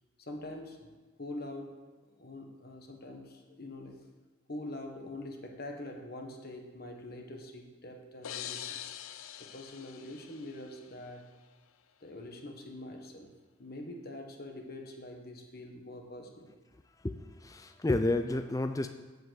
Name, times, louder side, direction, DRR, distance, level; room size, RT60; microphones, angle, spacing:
voice 1, 0.2-4.0 4.5-8.8 9.4-11.3 12.0-13.3 13.6-16.5, left 1 dB, 45° left, 3 dB, 1.4 m, -44 dB
sound 1, 8.2-11.0, left 10 dB, 80° left, 0.5 m, -44 dB
voice 2, 17.0-18.9, left 2 dB, 15° left, 8 dB, 0.4 m, -31 dB
8.1 x 7.5 x 7.7 m, 1.3 s
head